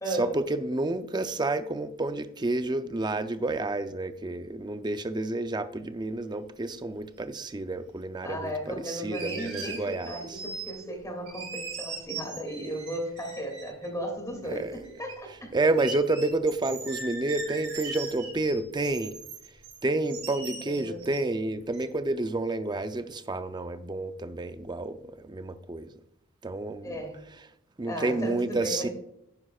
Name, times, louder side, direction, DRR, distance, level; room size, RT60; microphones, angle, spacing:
voice 1, 0.1-10.4 14.4-14.8 15.5-19.2 19.8-26.0 26.4-27.0 27.8-28.9, right 2 dB, 20° right, 10 dB, 0.5 m, -30 dB
sound 1, 6.9-7.0 9.1-11.0 11.3-13.9 14.5-15.1 15.4-15.5 15.8-21.4 21.7-21.8, right 4 dB, 85° right, 3.3 m, -40 dB
voice 2, 8.2-15.5 20.7-21.0 26.8-27.2 27.9-28.9, right 1 dB, 15° left, 2 dB, 2.4 m, -35 dB
10.0 x 9.7 x 2.4 m, 0.74 s
head